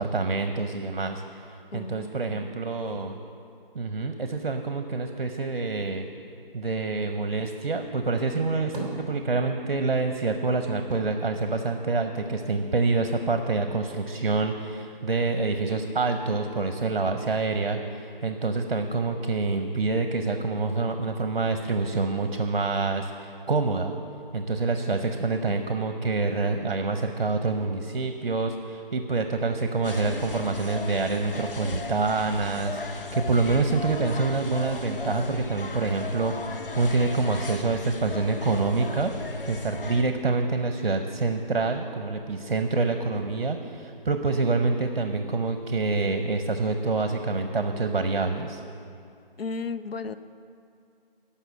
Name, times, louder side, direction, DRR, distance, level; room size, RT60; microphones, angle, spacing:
voice 1, 0.0-3.2 3.7-6.1 6.5-24.0 24.3-39.1 39.5-48.6, right 3 dB, 60° right, 7 dB, 0.8 m, -27 dB
voice 2, 1.7-2.5 49.4-50.2, left 4 dB, 90° left, 11 dB, 0.6 m, -35 dB
sound 1, 8.3-9.8 10.1-12.5 12.8-13.7, right 2 dB, 10° right, 2.2 m, -39 dB
sound 2, 29.8-40.0, left 4 dB, 65° left, 0.9 m, -36 dB
12.0 x 5.8 x 8.3 m, 2.4 s
figure-of-eight pair, 175°, 29 cm